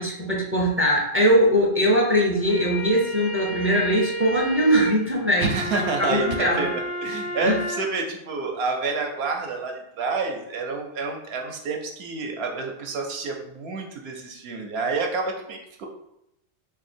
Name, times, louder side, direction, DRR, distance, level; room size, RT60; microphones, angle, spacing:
voice 1, 0.0-6.7 7.4-7.5, equal, 20° right, -3 dB, 0.4 m, -21 dB
sound 1, 2.3-7.9, right 1 dB, 50° left, 0.4 m, -32 dB
voice 2, 5.4-15.9, right 4 dB, 70° right, 2 dB, 0.8 m, -29 dB
2.7 x 2.4 x 4.2 m, 0.80 s
omnidirectional pair, 1.2 m